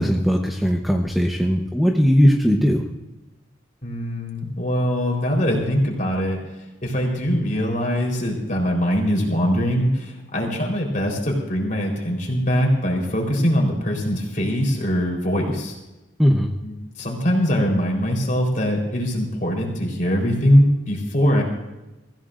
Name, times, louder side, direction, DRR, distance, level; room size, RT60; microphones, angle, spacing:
voice 1, 0.0-2.8 16.2-16.5, equal, ahead, 1 dB, 0.8 m, -18 dB
voice 2, 3.8-6.4 6.8-15.8 16.6-21.4, equal, 40° left, 0 dB, 3.9 m, -22 dB
24.5 x 15.5 x 2.5 m, 1.0 s
head